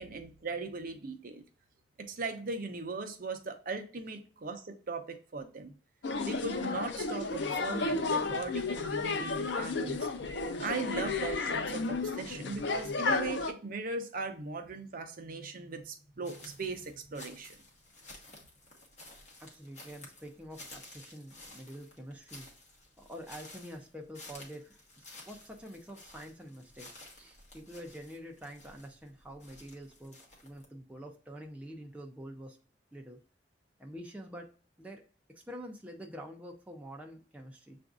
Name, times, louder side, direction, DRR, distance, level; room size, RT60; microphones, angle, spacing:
voice 1, 0.0-1.4 2.0-5.7 6.2-10.1 10.6-17.6, right 3 dB, 50° right, 6 dB, 0.6 m, -39 dB
sound 1, 6.0-13.5, left 3 dB, 65° left, 0.5 m, -32 dB
sound 2, 16.2-30.7, left 2 dB, 40° left, 1.1 m, -53 dB
voice 2, 19.4-22.5 23.0-32.6 32.9-33.2 33.8-34.5 34.8-35.0 35.3-37.8, equal, 5° right, 1 dB, 0.4 m, -47 dB
6.8 x 2.5 x 2.4 m, 0.41 s
head